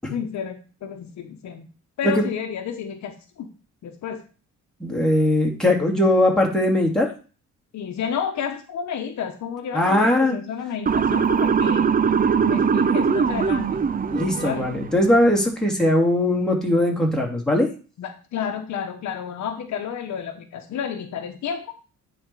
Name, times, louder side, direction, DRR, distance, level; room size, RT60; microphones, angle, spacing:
voice 1, 0.1-1.6 2.0-3.5 3.8-4.2 7.7-11.9 12.5-13.9 14.4-14.6 18.0-21.7, left 7 dB, 70° left, 6 dB, 1.1 m, -31 dB
voice 2, 4.8-7.1 9.7-10.4 14.1-17.7, left 1 dB, ahead, -2 dB, 2.8 m, -20 dB
Motor vehicle (road) / Siren, 10.9-15.0, right 6 dB, 30° right, 0.6 m, -21 dB
9.6 x 4.5 x 4.7 m, 0.36 s
cardioid pair, 90°, 30 cm